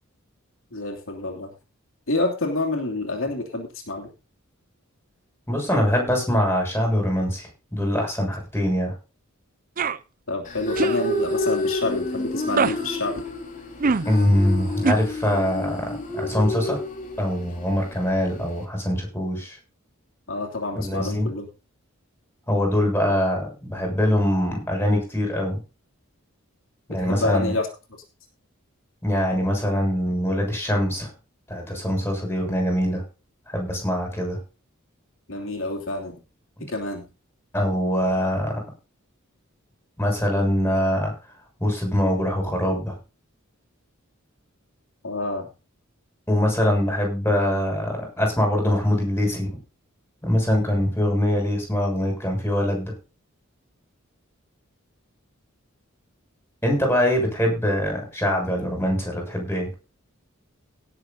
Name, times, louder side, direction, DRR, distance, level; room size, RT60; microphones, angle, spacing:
voice 1, 0.7-1.5 2.1-4.1 10.3-13.2 20.3-21.5 26.9-27.7 35.3-36.2 36.6-37.0 45.0-45.5, left 2 dB, 70° left, 1 dB, 3.0 m, -28 dB
voice 2, 5.5-8.9 14.1-16.8 17.2-19.6 20.8-21.3 22.5-25.6 26.9-27.5 29.0-31.1 31.5-33.0 33.5-34.4 37.5-38.6 40.0-41.1 41.6-43.0 46.3-49.6 50.2-52.9 56.6-59.7, left 1 dB, 10° left, 1 dB, 7.0 m, -23 dB
sound 1, 9.8-10.0 10.8-11.0 12.5-12.8 13.8-14.1 14.8-14.9, right 4 dB, 40° right, 0.6 m, -22 dB
sound 2, 10.4-18.7, left 2 dB, 40° left, 3.2 m, -30 dB
18.0 x 7.6 x 4.0 m, 0.31 s
head